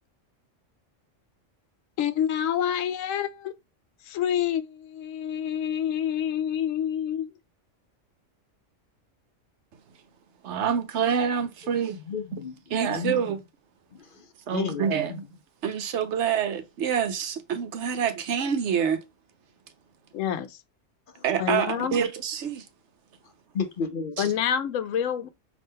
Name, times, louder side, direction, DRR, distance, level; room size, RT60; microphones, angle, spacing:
voice 1, 2.0-3.5 4.0-7.3 20.1-20.6 21.4-22.0 24.2-25.3, left 9 dB, 80° left, 0.9 m, -27 dB
voice 2, 10.4-12.0 12.7-13.4 14.5-15.1 15.6-19.0 21.2-22.6 24.2-24.3, right 7 dB, 70° right, 0.9 m, -26 dB
voice 3, 12.1-12.6 12.9-13.2 13.9-14.2 14.5-15.2 21.1-21.2 23.5-24.3, left 6 dB, 55° left, 0.7 m, -32 dB
5.3 x 2.7 x 3.6 m
omnidirectional pair, 1.3 m